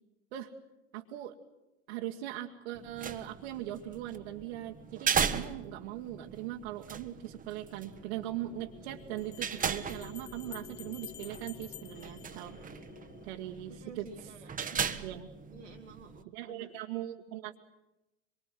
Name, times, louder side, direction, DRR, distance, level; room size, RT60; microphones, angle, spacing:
voice 1, 0.9-1.4 1.9-12.6 13.2-14.1 15.0-15.3 16.3-17.6, right 13 dB, 60° right, 0 dB, 1.7 m, -40 dB
sound 1, 2.7-16.2, right 7 dB, 20° right, 1.4 m, -38 dB
sound 2, 7.1-13.3, left 5 dB, 35° left, 2.5 m, -52 dB
Bell, 7.5-7.6 9.2-13.1, left 12 dB, 70° left, 1.1 m, -51 dB
voice 2, 13.7-15.1 15.5-16.8, right 4 dB, 85° right, 1 dB, 1.7 m, -51 dB
25.5 x 23.5 x 7.7 m, 0.98 s
figure-of-eight pair, 80°, 36 cm